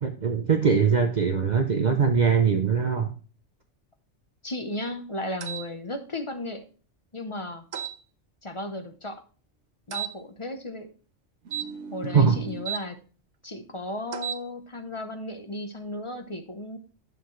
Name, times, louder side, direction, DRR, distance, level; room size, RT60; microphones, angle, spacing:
voice 1, 0.0-3.1 12.1-12.4, right 6 dB, 45° right, 0.7 m, -22 dB
voice 2, 4.4-6.6 7.1-7.6 8.4-9.2 9.9-10.9 11.9-13.0 13.4-16.8, left 1 dB, 30° left, 0.8 m, -35 dB
sound 1, 5.4-5.7 7.7-8.0 9.9-10.1 11.5-12.8 14.1-14.4, right 9 dB, 85° right, 1.1 m, -34 dB
9.4 x 6.9 x 3.1 m
omnidirectional pair, 1.2 m